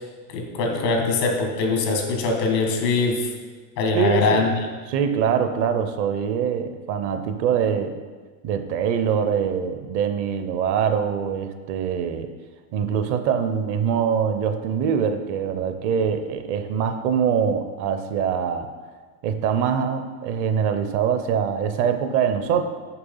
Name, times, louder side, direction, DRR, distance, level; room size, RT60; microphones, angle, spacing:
voice 1, 0.3-3.3 3.8-4.5, left 3 dB, 90° left, 3 dB, 2.0 m, -22 dB
voice 2, 3.9-4.5 4.9-8.0 8.4-12.3 12.7-18.7 19.2-22.6, right 7 dB, 40° right, 8 dB, 0.6 m, -23 dB
6.9 x 5.8 x 5.5 m, 1.4 s
supercardioid pair, 145°, 47 cm